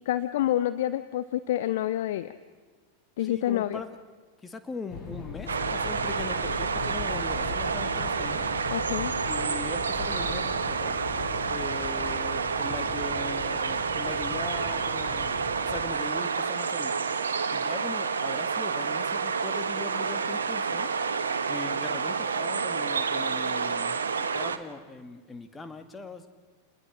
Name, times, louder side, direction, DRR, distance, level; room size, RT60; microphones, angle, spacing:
voice 1, 0.1-2.3 3.2-3.8 8.7-9.1, left 13 dB, 55° left, 12 dB, 0.8 m, -28 dB
voice 2, 3.2-4.0 4.4-8.7 9.3-11.0 11.5-17.1 17.5-20.9 21.5-24.0 24.3-26.3, left 4 dB, 15° left, 8 dB, 2.0 m, -40 dB
sound 1, 4.9-15.9, left 5 dB, 35° left, 5.2 m, -40 dB
sound 2, 5.5-24.6, right 5 dB, 70° right, 1.3 m, -29 dB
29.0 x 20.5 x 6.3 m, 1.4 s
figure-of-eight pair, 90°, 0 cm